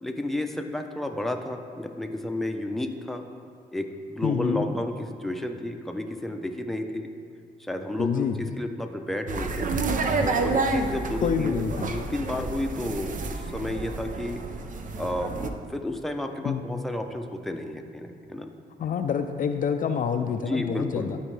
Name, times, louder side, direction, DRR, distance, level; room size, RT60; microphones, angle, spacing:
voice 1, 0.0-3.2 3.7-7.1 7.6-9.7 10.2-11.5 11.9-14.4 15.0-18.5 20.4-21.2, left 1 dB, ahead, 4 dB, 0.6 m, -31 dB
voice 2, 4.2-4.8 8.0-8.4 11.2-12.0 12.9-13.0 16.4-16.6 18.8-21.2, left 7 dB, 50° left, 7 dB, 0.4 m, -27 dB
sound 1, 9.3-15.5, right 3 dB, 50° right, 0.6 m, -29 dB
12.0 x 4.4 x 3.3 m, 2.2 s
supercardioid pair, 60°, 17 cm